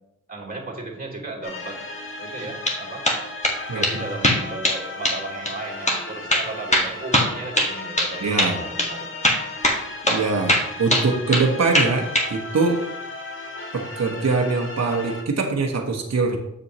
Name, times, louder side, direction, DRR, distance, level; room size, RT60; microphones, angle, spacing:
voice 1, 0.3-1.8 2.2-3.1 3.7-9.1, right 3 dB, 25° right, -2 dB, 2.7 m, -35 dB
sound 1, 1.4-15.2, left 2 dB, 40° left, 1.4 m, -36 dB
sound 2, 2.4-2.8 3.0-3.6 3.8-3.9 4.2-4.8 5.0-5.2 5.5-5.6 5.9-6.0 6.3-8.1 8.4-8.5 8.8-8.9 9.2-9.8 10.1-10.2 10.5-11.5 11.7-12.3, left 1 dB, 20° left, 1.8 m, -20 dB
voice 2, 3.7-4.0 8.2-8.6 10.1-12.8 13.7-16.4, right 4 dB, 50° right, 2 dB, 1.2 m, -23 dB
7.2 x 6.7 x 3.1 m, 0.82 s
cardioid pair, 50°, 33 cm